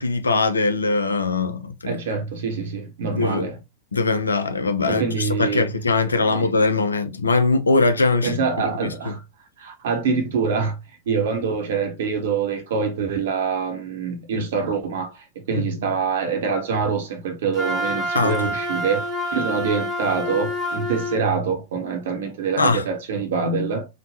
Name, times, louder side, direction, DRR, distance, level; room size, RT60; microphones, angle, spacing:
voice 1, 0.0-2.0 3.1-3.5 3.9-8.4 8.8-9.1 15.5-15.6 18.1-18.4 22.6-22.8, left 3 dB, 75° left, 0.4 m, -21 dB
voice 2, 1.8-3.6 4.9-5.7 6.3-6.5 8.2-9.2 9.6-10.8 11.1-19.0 19.3-23.9, right 5 dB, 60° right, 0.7 m, -25 dB
Wind instrument woodwind instrument, 17.5-21.3, equal, 10° left, 0.7 m, -27 dB
3.1 x 2.1 x 2.7 m
figure-of-eight pair, 90°, 0 cm